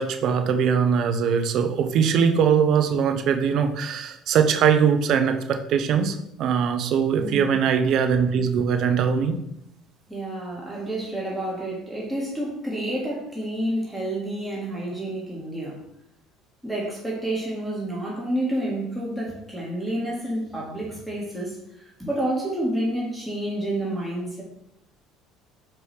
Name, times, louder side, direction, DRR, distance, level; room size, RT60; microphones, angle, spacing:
voice 1, 0.0-9.4, right 7 dB, 60° right, 7 dB, 0.5 m, -21 dB
voice 2, 7.2-7.5 10.1-15.8 16.6-21.6 22.0-24.4, right 1 dB, 5° right, -5 dB, 1.3 m, -29 dB
4.5 x 3.0 x 3.2 m, 0.78 s
hypercardioid pair, 65°, 0 cm